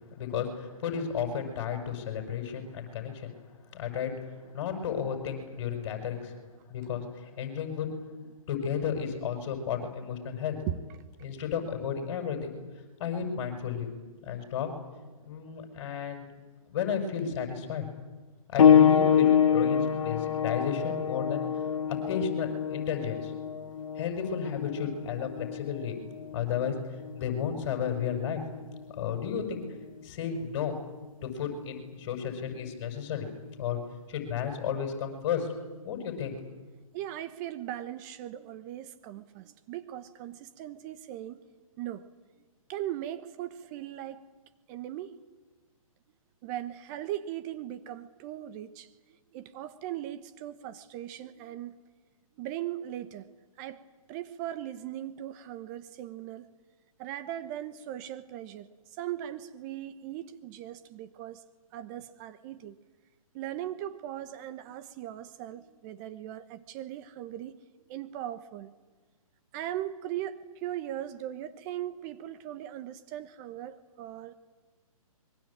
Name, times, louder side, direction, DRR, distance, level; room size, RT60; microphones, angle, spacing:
voice 1, 0.1-3.3 3.7-6.4 6.7-7.9 8.5-10.6 11.2-12.6 13.0-13.9 14.2-14.7 15.2-16.3 16.7-17.9 18.5-21.4 22.1-23.3 24.0-26.0 26.3-26.8 27.1-28.4 28.9-29.7 30.0-30.7 31.2-33.3 33.6-33.8 34.1-35.5 35.8-36.5, left 7 dB, 40° left, 5 dB, 6.6 m, -33 dB
sound 1, 18.6-28.8 29.8-29.9 30.6-30.7, left 8 dB, 60° left, 2.0 m, -26 dB
voice 2, 36.9-41.4 41.8-42.0 42.7-44.2 44.7-45.2 46.4-48.9 49.3-51.8 52.4-53.3 53.6-53.8 54.1-56.5 57.0-61.4 61.7-62.8 63.3-67.6 67.9-68.7 69.5-74.3, right 12 dB, 30° right, 11 dB, 1.1 m, -39 dB
26.5 x 23.0 x 8.8 m, 1.3 s
hypercardioid pair, 140°, 19 cm